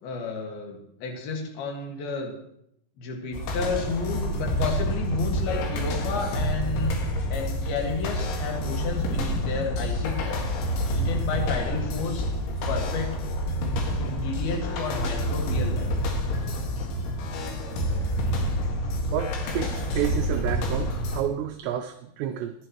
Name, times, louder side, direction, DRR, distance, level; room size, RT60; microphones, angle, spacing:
voice 1, 0.0-2.3 3.0-6.9 7.3-12.3 12.7-13.2 14.0-15.9, left 4 dB, 60° left, 1 dB, 3.5 m, -32 dB
sound 1, 3.3-21.2, equal, 80° left, 4.2 m, -28 dB
voice 2, 19.1-22.5, right 11 dB, 80° right, 6 dB, 2.6 m, -30 dB
20.5 x 11.0 x 3.1 m, 0.75 s
omnidirectional pair, 5.4 m